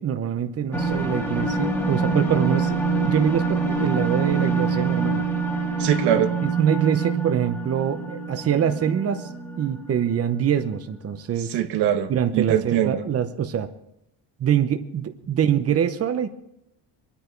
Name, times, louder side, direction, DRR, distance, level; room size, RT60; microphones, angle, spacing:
voice 1, 0.0-5.3 6.4-9.3 9.6-11.6 12.1-13.7 14.4-16.3, right 8 dB, 35° right, 9 dB, 0.9 m, -24 dB
sound 1, 0.7-10.1, right 4 dB, 5° left, 1.7 m, -25 dB
voice 2, 5.8-6.3 11.5-13.0, right 10 dB, 90° right, 7 dB, 1.4 m, -22 dB
23.5 x 10.0 x 4.6 m, 0.83 s
cardioid pair, 125°, 39 cm